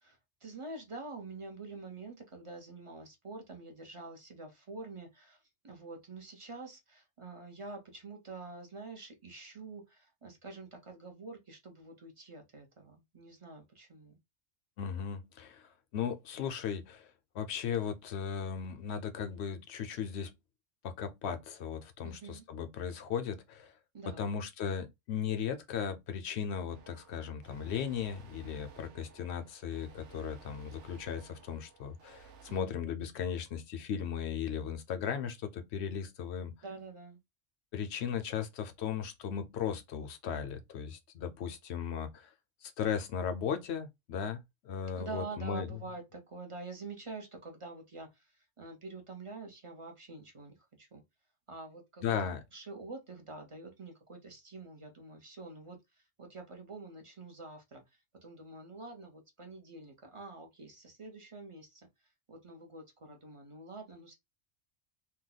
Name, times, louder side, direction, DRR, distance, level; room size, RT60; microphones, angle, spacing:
voice 1, 0.0-14.2 22.0-22.4 23.9-24.3 32.5-32.8 36.6-37.2 44.9-51.0 51.5-61.9 62.3-64.2, right 3 dB, 30° right, 0.6 m, -47 dB
voice 2, 14.8-17.1 17.3-20.3 20.8-23.7 24.2-36.5 37.7-42.3 42.6-45.7 52.0-52.4, left 7 dB, 65° left, 0.8 m, -37 dB
sound 1, 26.7-32.6, right 6 dB, 70° right, 1.0 m, -56 dB
2.8 x 2.2 x 3.9 m
omnidirectional pair, 1.3 m